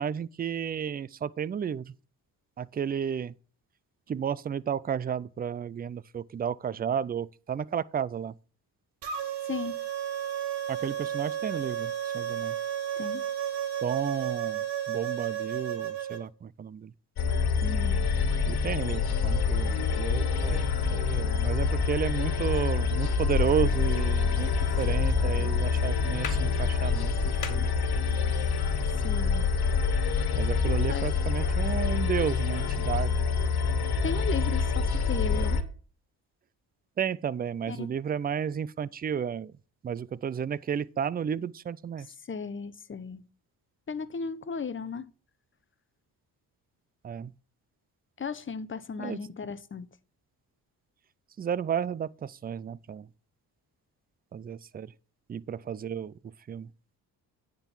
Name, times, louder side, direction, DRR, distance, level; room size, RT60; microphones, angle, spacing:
voice 1, 0.0-1.9 2.6-3.3 4.1-8.3 10.7-12.6 13.8-16.9 18.5-24.5 24.8-27.7 30.3-33.2 37.0-39.5 39.8-42.1 47.0-47.3 49.0-49.2 51.4-53.1 54.3-54.9 55.3-56.1 56.5-56.7, right 8 dB, 25° right, 0.4 m, -32 dB
sound 1, 9.0-16.2, right 10 dB, 80° right, 1.7 m, -32 dB
voice 2, 9.5-9.8 13.0-13.3 17.6-18.1 29.0-29.5 30.7-31.1 34.0-35.6 37.7-37.9 42.3-43.2 43.9-45.1 48.2-49.9, left 5 dB, 30° left, 0.8 m, -35 dB
sound 2, 17.2-35.6, left 5 dB, 65° left, 1.6 m, -26 dB
sound 3, 23.4-28.6, left 7 dB, 50° left, 1.5 m, -46 dB
9.6 x 3.9 x 7.3 m
supercardioid pair, 70°, 41 cm